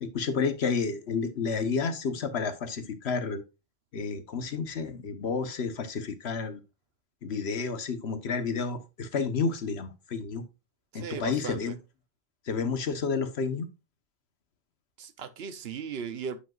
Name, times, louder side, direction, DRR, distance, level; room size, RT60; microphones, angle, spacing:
voice 1, 0.0-3.4 3.9-6.6 7.2-10.5 10.9-11.8 12.5-13.7, left 5 dB, 90° left, 1.3 m, -30 dB
voice 2, 10.9-11.6 15.0-16.4, right 6 dB, 75° right, 1.0 m, -37 dB
8.7 x 7.8 x 2.4 m
omnidirectional pair, 1.0 m